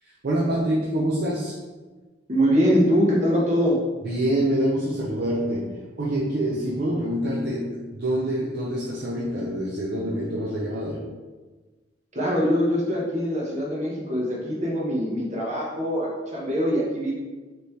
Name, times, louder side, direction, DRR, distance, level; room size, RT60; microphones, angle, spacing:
voice 1, 0.0-1.6 4.0-11.0, right 1 dB, 60° right, -5 dB, 0.6 m, -26 dB
voice 2, 2.3-3.8 12.1-17.1, equal, 40° right, -4 dB, 1.2 m, -23 dB
5.3 x 3.1 x 3.2 m, 1.3 s
head